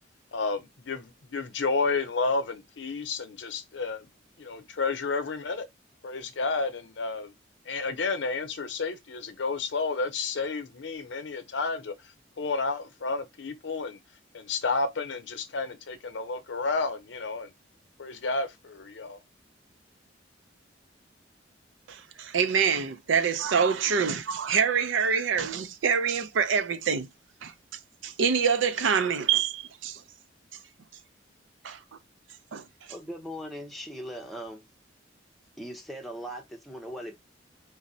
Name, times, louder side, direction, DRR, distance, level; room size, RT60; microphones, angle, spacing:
voice 1, 0.3-4.1 4.4-5.7 6.0-7.3 7.7-11.9 12.4-14.0 14.3-17.5 18.0-19.2, left 4 dB, 75° left, 0.6 m, -31 dB
voice 2, 21.9-27.1 27.4-27.5 28.0-30.0 31.6-31.8 32.5-32.6, right 6 dB, 85° right, 0.5 m, -26 dB
voice 3, 32.9-34.7 35.6-37.1, equal, ahead, 0.5 m, -39 dB
3.9 x 2.1 x 2.6 m
head